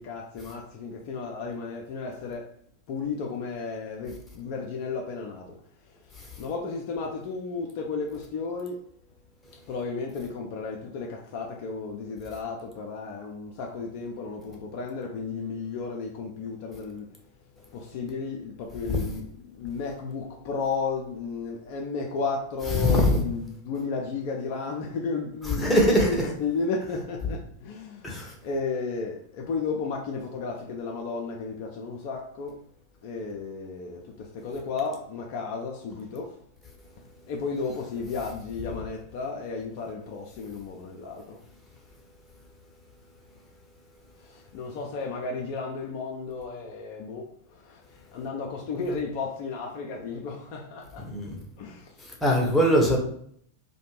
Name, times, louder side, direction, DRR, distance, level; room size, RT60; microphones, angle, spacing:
voice 1, 0.0-2.5 2.9-5.6 6.4-8.8 9.7-17.1 17.7-28.1 28.4-32.6 33.0-36.4 37.3-41.4 44.2-51.1 51.6-51.9, left 4 dB, 45° left, 0.4 m, -33 dB
voice 2, 22.8-23.2 25.5-26.3 28.0-28.3 51.0-51.4 52.0-53.0, equal, 10° left, 0.7 m, -22 dB
2.4 x 2.1 x 3.0 m
figure-of-eight pair, 90°, 0 cm